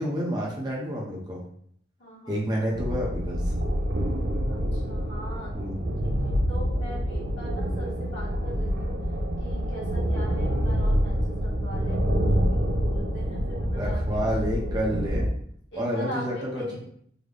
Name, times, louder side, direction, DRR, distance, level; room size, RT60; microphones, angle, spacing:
voice 1, 0.0-1.4 2.3-3.5 5.5-5.8 6.4-6.5 13.7-15.3 15.7-16.6, equal, 25° right, -3 dB, 0.7 m, -29 dB
voice 2, 2.0-2.4 4.5-5.5 6.0-8.9 9.4-14.3 14.9-15.3 15.7-16.8, equal, 90° left, -6 dB, 1.4 m, -41 dB
sound 1, 2.7-15.3, equal, 70° right, 0.5 m, -27 dB
3.9 x 2.2 x 3.2 m, 0.64 s
head